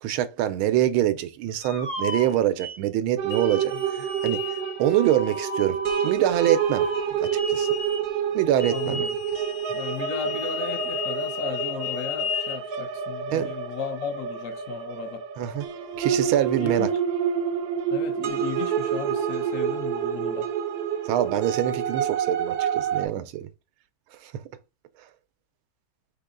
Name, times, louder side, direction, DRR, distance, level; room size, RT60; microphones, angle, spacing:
voice 1, 0.0-4.4 4.8-6.9 7.2-7.7 8.3-9.0 13.3-13.5 15.4-15.6 16.0-16.9 21.1-23.5 24.2-24.3, right 12 dB, 90° right, 1.5 m, -25 dB
sound 1, 1.6-2.8 3.3-8.1 8.6-12.6, left 5 dB, 30° left, 0.6 m, -34 dB
sound 2, 3.2-23.1, right 8 dB, 70° right, 0.9 m, -28 dB
voice 2, 8.7-9.2 9.7-15.2 16.5-16.9 17.9-20.5 22.9-23.3, left 8 dB, 70° left, 0.8 m, -35 dB
4.1 x 3.0 x 3.7 m
omnidirectional pair, 2.2 m